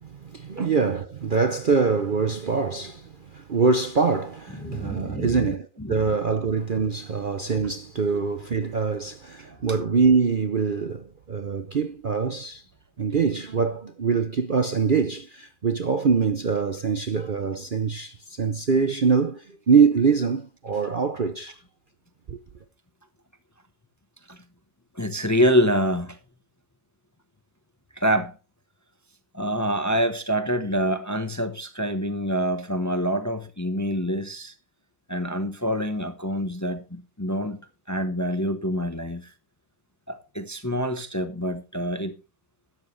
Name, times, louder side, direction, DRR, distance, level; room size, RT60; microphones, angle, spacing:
voice 1, 0.0-12.6 13.0-21.6 22.3-22.4, right 5 dB, 45° right, 0.8 m, -24 dB
voice 2, 4.6-5.5 5.8-6.1 24.3-24.4 24.9-26.2 28.0-28.4 29.3-34.5 35.1-37.6 37.9-39.3 40.1-42.1, equal, 15° left, 0.8 m, -26 dB
12.5 x 9.4 x 3.2 m
omnidirectional pair, 1.6 m